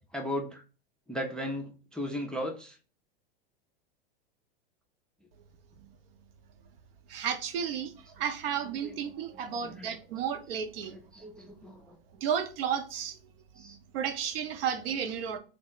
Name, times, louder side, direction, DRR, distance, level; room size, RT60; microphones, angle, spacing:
voice 1, 0.1-0.6 1.1-2.8 8.6-9.0 9.3-10.0 10.9-12.0 13.6-13.8, equal, 5° left, 0.3 m, -37 dB
voice 2, 7.1-10.9 12.1-13.2 13.6-15.4, right 8 dB, 70° right, 0.7 m, -33 dB
3.3 x 2.0 x 3.8 m
hypercardioid pair, 105°, 30 cm